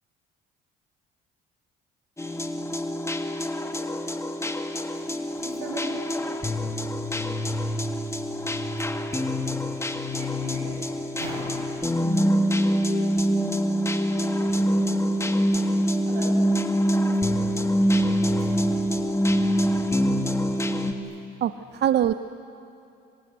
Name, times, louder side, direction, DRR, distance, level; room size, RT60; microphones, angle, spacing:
sound 1, 2.2-20.9, equal, 15° left, 2.0 m, -25 dB
voice 1, 4.9-7.8 8.0-9.9 10.2-10.8 11.1-12.7 13.3-19.6 20.0-20.3 20.7-21.2, right 2 dB, 85° right, 1 dB, 7.2 m, -44 dB
voice 2, 21.4-22.1, right 11 dB, 55° right, 12 dB, 0.7 m, -23 dB
28.0 x 26.0 x 8.1 m, 2.6 s
supercardioid pair, 85°, 21 cm